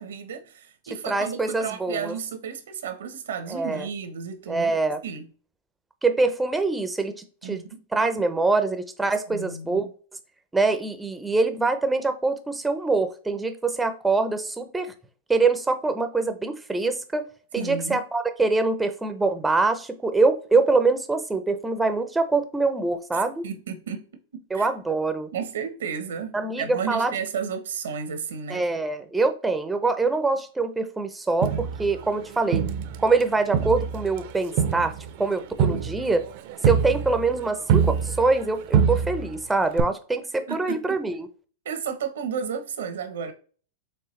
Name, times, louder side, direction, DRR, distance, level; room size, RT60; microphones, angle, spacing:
voice 1, 0.0-4.7 5.0-5.3 7.4-7.8 9.3-9.9 17.6-18.0 23.1-24.0 24.3-24.7 25.3-28.6 40.5-41.0 41.6-43.3, right 7 dB, 85° right, 1.0 m, -33 dB
voice 2, 1.1-2.1 3.5-3.9 4.5-5.0 6.0-7.6 7.9-9.9 10.5-14.9 15.3-17.3 17.5-23.4 24.5-25.3 26.3-27.1 28.5-32.6 33.0-36.3 36.6-41.3, right 3 dB, 10° right, 0.6 m, -24 dB
Crowd, 31.4-33.2 33.5-38.5 38.7-39.4 39.8-39.9, right 7 dB, 55° right, 0.6 m, -25 dB
4.6 x 3.4 x 3.2 m
hypercardioid pair, 135°, 0 cm